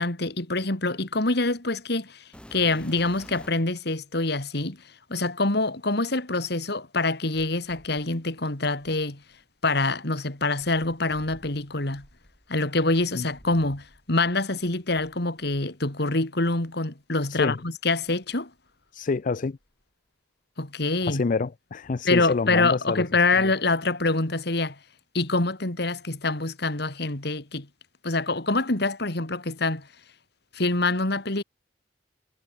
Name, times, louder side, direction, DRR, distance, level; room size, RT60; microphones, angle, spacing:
voice 1, 0.0-2.2 2.5-4.8 5.1-9.2 9.6-12.1 12.5-18.5 20.6-21.2 22.0-24.8 25.1-27.7 28.0-29.9 30.5-31.4, left 2 dB, 65° left, 2.9 m, -25 dB
sound 1, 2.3-3.7 4.6-4.7 7.3-9.4 10.6-14.3 14.6-15.7 16.4-16.6 17.2-17.3 17.9-19.0 19.3-19.8 21.1-21.2, equal, 5° left, 4.3 m, -52 dB
voice 2, 17.3-17.6 18.9-19.6 21.1-23.0 23.4-23.5, left 4 dB, 45° left, 0.5 m, -27 dB
head